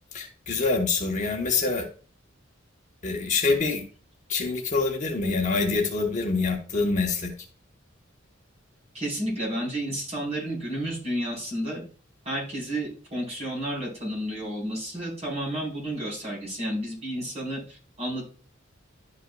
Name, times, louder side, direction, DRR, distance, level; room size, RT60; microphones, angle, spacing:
voice 1, 0.1-1.9 3.0-3.8 4.3-7.3, left 4 dB, 40° left, 2 dB, 1.0 m, -25 dB
voice 2, 8.9-11.8 12.2-18.3, right 1 dB, 35° right, -4 dB, 4.1 m, -31 dB
11.0 x 5.4 x 2.3 m, 0.38 s
head